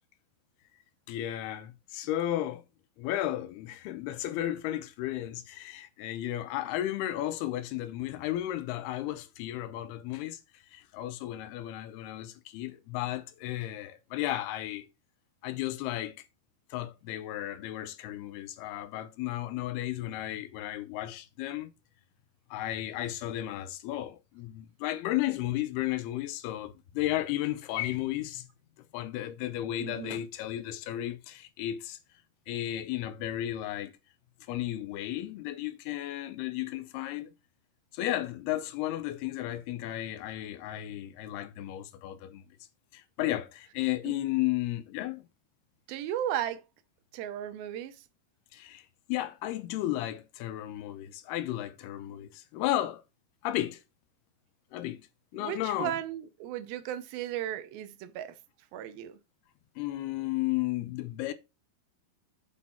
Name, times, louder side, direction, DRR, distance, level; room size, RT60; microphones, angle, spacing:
voice 1, 1.1-2.6 3.0-10.4 10.7-14.9 15.4-16.2 16.7-21.7 22.5-28.5 28.9-32.0 32.5-33.9 34.5-37.3 37.9-42.4 42.9-45.2 48.5-53.0 53.4-53.8 54.7-55.0 55.3-55.9 59.8-61.3, left 14 dB, 85° left, 2.8 m, -34 dB
voice 2, 29.8-30.2 44.1-44.2 45.9-46.6 47.1-48.0 55.4-58.3 58.7-59.2, right 11 dB, 80° right, 2.3 m, -35 dB
7.5 x 5.3 x 4.3 m
omnidirectional pair, 4.5 m